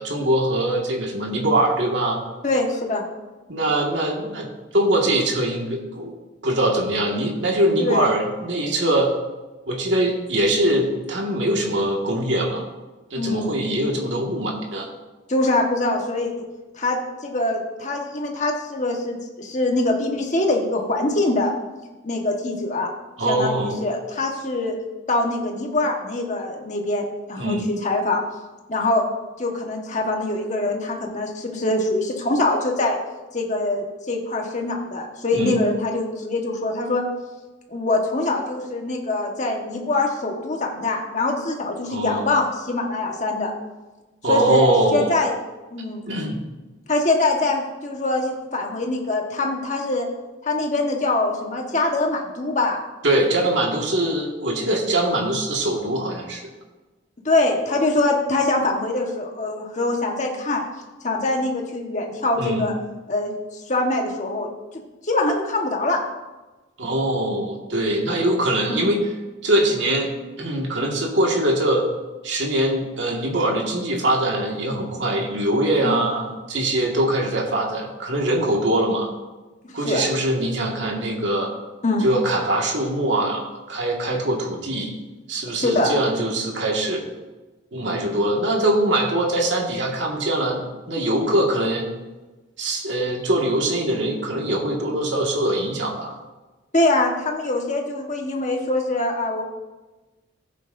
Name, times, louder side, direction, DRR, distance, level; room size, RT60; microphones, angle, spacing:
voice 1, 0.0-2.2 3.5-4.5 4.7-6.1 6.4-9.1 9.7-12.6 13.1-14.9 23.2-23.8 27.4-27.7 35.3-35.6 41.9-42.3 44.2-45.1 46.1-46.4 53.0-56.4 62.4-62.7 66.8-69.0 69.4-70.1 70.4-71.9 72.2-79.1 79.7-81.5 82.0-84.9 85.3-87.0 87.7-90.6 90.9-91.8 92.6-96.1, right 1 dB, 70° right, -1 dB, 1.9 m, -22 dB
voice 2, 2.4-3.1 7.8-8.1 13.2-13.5 15.3-16.3 16.8-21.5 22.0-22.9 23.3-24.7 25.1-27.6 27.8-28.2 28.7-29.0 29.4-33.0 33.3-37.0 37.7-43.5 44.3-45.3 45.7-46.0 46.9-50.1 50.4-52.8 57.2-60.6 61.0-62.7 63.1-64.5 64.7-66.0 68.7-68.9 75.8-76.0 79.8-80.1 81.8-82.1 85.5-85.9 96.7-99.4, left 2 dB, 40° left, 1 dB, 1.4 m, -23 dB
15.0 x 8.3 x 2.7 m, 1.2 s
head